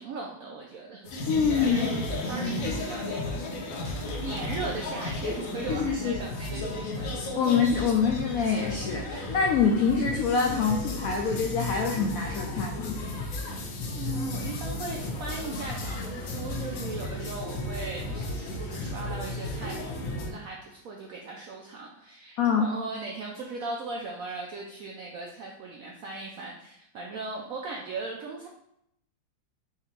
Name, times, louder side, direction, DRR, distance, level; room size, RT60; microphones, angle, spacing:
voice 1, 0.0-1.3 1.6-3.7 4.2-7.1 13.9-28.5, right 3 dB, 75° right, -1 dB, 0.8 m, -38 dB
sound 1, 1.0-20.3, left 2 dB, 60° left, 0.9 m, -34 dB
voice 2, 1.3-1.9 5.7-6.2 7.3-13.0 22.4-22.7, left 6 dB, 85° left, 2 dB, 0.7 m, -25 dB
3.6 x 2.9 x 4.3 m, 0.77 s
omnidirectional pair, 2.0 m